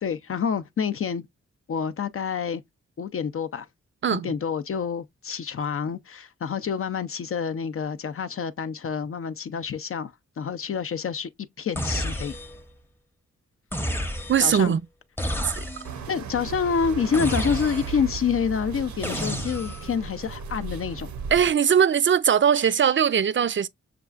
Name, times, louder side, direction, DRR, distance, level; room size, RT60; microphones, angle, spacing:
voice 1, 0.0-1.3 1.7-2.6 3.0-3.7 4.1-11.3 11.6-12.3 14.4-14.7 16.1-21.1, left 6 dB, 50° left, 0.5 m, -28 dB
voice 2, 4.0-4.3 14.3-14.8 15.4-15.6 21.3-23.7, right 8 dB, 40° right, 0.5 m, -20 dB
sound 1, 11.7-12.7 13.7-14.6 15.2-16.0 17.1-18.1 19.0-19.9, equal, 5° left, 0.7 m, -31 dB
sound 2, 15.8-21.5, right 7 dB, 75° right, 0.7 m, -35 dB
6.7 x 2.4 x 2.4 m
cardioid pair, 55°, 29 cm